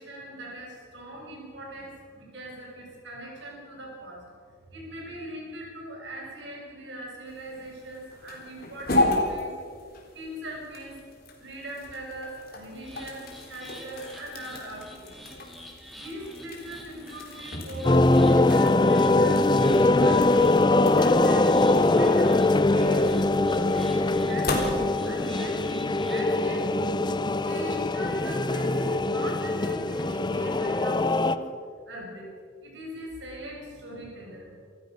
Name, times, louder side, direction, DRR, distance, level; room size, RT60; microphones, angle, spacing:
voice 1, 0.0-9.5 10.1-11.0 11.4-15.4 16.0-19.5 19.9-20.6 20.9-22.5 22.7-27.0 27.4-31.6 31.9-32.3 32.6-34.6, right 1 dB, 70° right, -2 dB, 6.9 m, -40 dB
sound 1, 7.3-25.3, left 2 dB, 50° left, 3.9 m, -35 dB
sound 2, 12.7-26.3, equal, ahead, 2.9 m, -47 dB
sound 3, 17.8-31.3, left 2 dB, 25° left, 0.6 m, -22 dB
26.5 x 14.5 x 6.8 m, 2.3 s
head